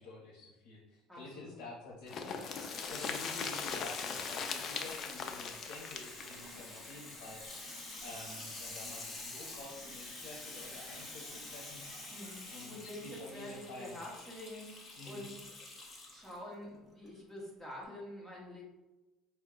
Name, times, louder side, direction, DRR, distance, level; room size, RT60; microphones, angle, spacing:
voice 1, 0.0-2.4 2.9-7.4 8.0-12.2 12.5-14.0 15.0-15.3, left 2 dB, 80° left, -3 dB, 0.8 m, -49 dB
voice 2, 1.1-1.6 12.1-15.4 16.1-18.6, left 1 dB, ahead, -5 dB, 1.2 m, -47 dB
sound 1, 2.1-7.8 8.1-8.2 8.5-8.6, left 6 dB, 40° left, 0.4 m, -40 dB
Water tap faucet / Sink (filling or washing), 2.4-16.4 17.0-17.1, left 2 dB, 20° left, 0.9 m, -47 dB
sound 2, 6.2-12.9, right 4 dB, 85° right, 0.5 m, -58 dB
4.5 x 2.2 x 3.7 m, 1.1 s
cardioid pair, 150°, 0 cm